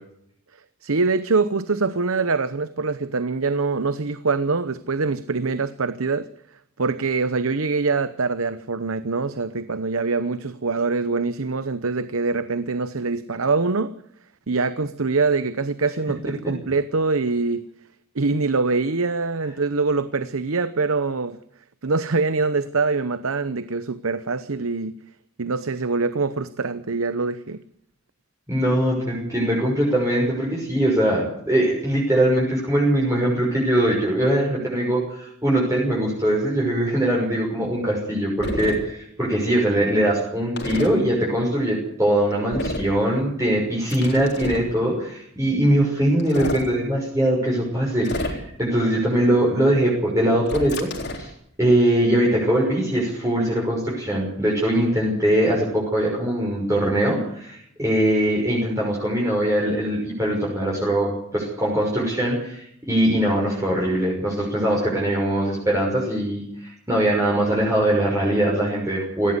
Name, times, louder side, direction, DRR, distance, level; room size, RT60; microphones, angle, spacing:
voice 1, 0.8-6.3 6.8-13.9 14.5-17.6 18.1-21.4 21.8-25.0 25.4-27.6, right 4 dB, 80° right, 13 dB, 0.9 m, -24 dB
voice 2, 28.5-50.9 51.1-51.3 51.6-69.3, right 1 dB, 15° right, -4 dB, 6.1 m, -21 dB
sound 1, 38.4-38.8 40.6-40.9 42.5-42.9 43.9-44.7 46.2-46.7 48.0-48.6 50.5-51.3, left 1 dB, 50° left, 3.9 m, -29 dB
19.0 x 16.5 x 8.1 m, 0.71 s
head